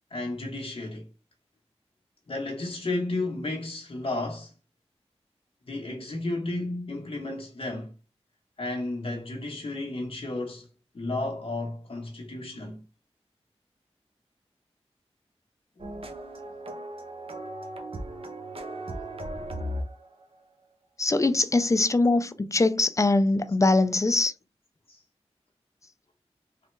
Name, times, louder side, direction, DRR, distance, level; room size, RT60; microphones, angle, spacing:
voice 1, 0.1-1.1 2.3-4.5 5.7-7.9 8.6-10.7 10.9-12.8 15.8-16.0 24.9-25.0, left 2 dB, 55° left, 0.7 m, -33 dB
sound 1, 15.8-20.2, right 1 dB, 60° right, 0.6 m, -37 dB
voice 2, 21.0-24.3, left 2 dB, 30° left, 0.3 m, -22 dB
3.2 x 2.0 x 3.1 m
cardioid pair, 40°, 11 cm